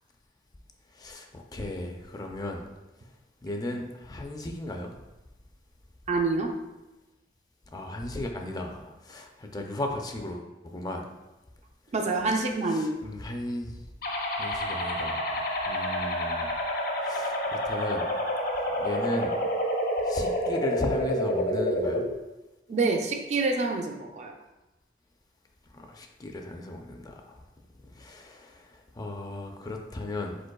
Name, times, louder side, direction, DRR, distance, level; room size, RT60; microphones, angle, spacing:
voice 1, 0.9-2.6 3.4-4.9 7.7-11.1 12.7-13.8 14.3-16.5 17.0-18.1 18.8-19.3 20.1-22.0 25.7-27.3 27.9-28.7 29.0-30.4, left 1 dB, 20° left, 3 dB, 0.4 m, -36 dB
voice 2, 6.1-6.5 11.9-13.0 22.7-24.3, right 3 dB, 40° right, 3 dB, 0.4 m, -27 dB
sound 1, 14.0-22.0, equal, 55° left, 0.7 m, -28 dB
5.1 x 4.0 x 2.2 m, 1.0 s
head